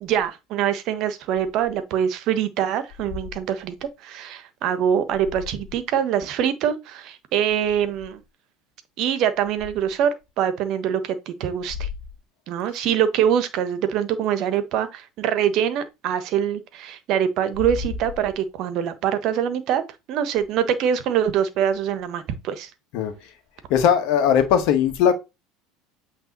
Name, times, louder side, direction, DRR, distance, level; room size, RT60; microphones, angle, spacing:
voice 1, 0.0-8.2 9.0-11.9 12.5-19.8 20.1-22.7, right 9 dB, 55° right, 1.3 m, -24 dB
voice 2, 23.7-25.1, left 8 dB, 60° left, 1.8 m, -18 dB
8.2 x 3.6 x 4.1 m
hypercardioid pair, 75°, 0 cm